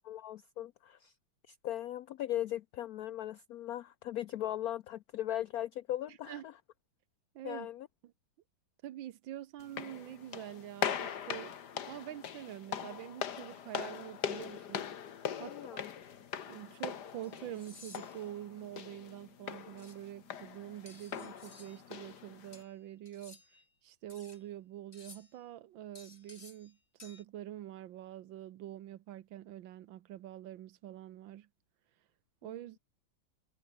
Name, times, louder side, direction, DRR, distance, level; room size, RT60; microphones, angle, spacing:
voice 1, 0.1-1.1 1.5-6.5 7.4-7.9 15.5-15.9 32.4-32.5, left 12 dB, 80° left, 0.8 m, -38 dB
voice 2, 6.1-6.4 7.3-7.7 8.0-8.1 8.8-11.6 11.9-14.9 15.4-15.8 16.5-23.4 23.8-31.5 32.4-32.8, right 12 dB, 75° right, 1.6 m, -46 dB
sound 1, 9.6-22.6, left 8 dB, 55° left, 1.9 m, -41 dB
sound 2, 16.0-16.1 17.2-18.3 19.8-20.0 20.9-21.8 22.5-23.7 24.1-24.4 24.9-25.4 25.9-26.7 27.0-27.2, left 3 dB, 30° left, 3.4 m, -56 dB
omnidirectional pair, 2.2 m